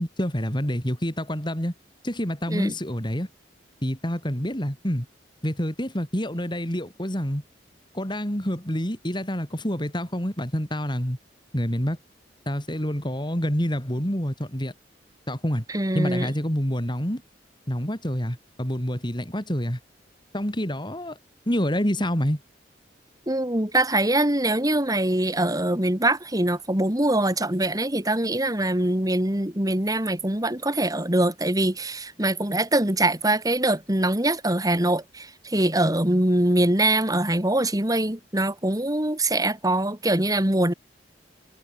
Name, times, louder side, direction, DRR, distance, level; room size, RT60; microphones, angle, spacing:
voice 1, 0.0-1.7 2.0-3.3 3.8-5.1 5.4-7.4 7.9-11.2 11.5-12.0 12.4-14.7 15.3-15.6 15.9-17.2 17.7-19.8 20.3-21.2 21.5-22.4, equal, 25° left, 6.7 m, -27 dB
voice 2, 15.7-16.3 23.3-40.7, right 1 dB, 20° right, 3.0 m, -23 dB
head